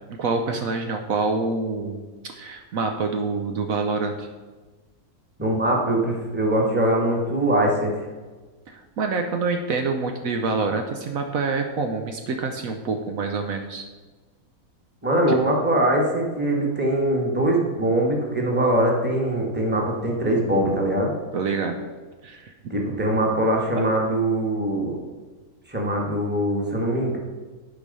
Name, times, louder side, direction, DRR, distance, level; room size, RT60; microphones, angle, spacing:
voice 1, 0.1-2.0 2.2-4.3 8.7-13.9 15.3-15.4 21.3-21.8 22.2-22.5 23.7-23.8, right 4 dB, 70° right, 5 dB, 1.1 m, -26 dB
voice 2, 5.4-7.9 15.0-21.1 22.7-25.0 25.7-27.2, right 1 dB, 5° right, -1 dB, 1.4 m, -22 dB
10.5 x 5.1 x 5.4 m, 1.3 s
omnidirectional pair, 1.6 m